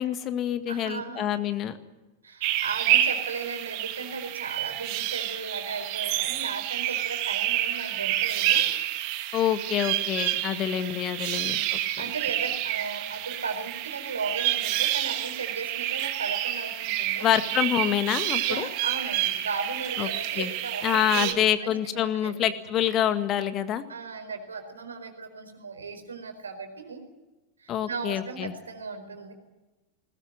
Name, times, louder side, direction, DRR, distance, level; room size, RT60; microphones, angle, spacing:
voice 1, 0.0-1.8 9.3-11.8 17.2-18.7 20.0-20.1 20.4-20.5 20.8-23.8 27.7-28.5, left 10 dB, 30° left, 10 dB, 1.8 m, -26 dB
voice 2, 0.7-1.3 2.2-8.6 11.4-17.3 18.5-21.3 21.6-22.5 23.9-27.0 27.6-29.3, right 4 dB, 70° right, 6 dB, 4.6 m, -36 dB
sound 1, 2.4-21.3, right 13 dB, 45° right, 2.3 m, -29 dB
21.5 x 20.5 x 9.1 m, 1.1 s
figure-of-eight pair, 90°, 0 cm